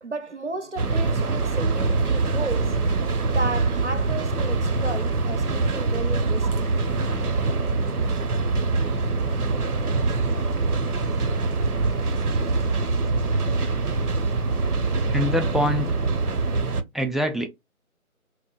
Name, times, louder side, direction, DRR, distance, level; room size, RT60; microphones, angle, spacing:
voice 1, 0.0-2.9 3.3-6.7, right 3 dB, 55° right, 0.5 m, -33 dB
sound 1, 0.8-16.8, right 3 dB, 85° right, 0.7 m, -24 dB
voice 2, 15.1-16.0 16.9-17.5, left 1 dB, ahead, 0.3 m, -24 dB
2.9 x 2.1 x 2.4 m
figure-of-eight pair, 165°, 44 cm